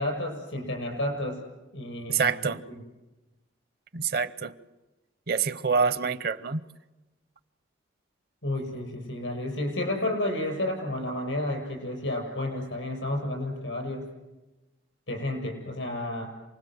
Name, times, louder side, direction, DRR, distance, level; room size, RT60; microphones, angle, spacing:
voice 1, 0.0-1.4 1.7-2.8 8.4-14.1 15.1-16.3, left 1 dB, 85° left, 7.2 m, -31 dB
voice 2, 2.1-2.6 3.9-4.5 5.3-6.6, right 5 dB, 55° right, 0.8 m, -26 dB
28.0 x 20.5 x 7.9 m
head